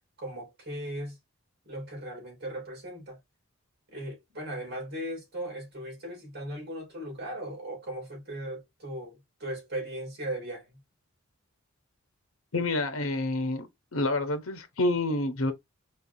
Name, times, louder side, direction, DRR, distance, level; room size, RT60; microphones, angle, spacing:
voice 1, 0.2-1.2 1.6-3.2 3.9-10.8, right 1 dB, 50° right, 2.9 m, -38 dB
voice 2, 12.5-13.7 13.9-15.5, left 2 dB, 85° left, 0.9 m, -28 dB
4.7 x 3.3 x 2.7 m
head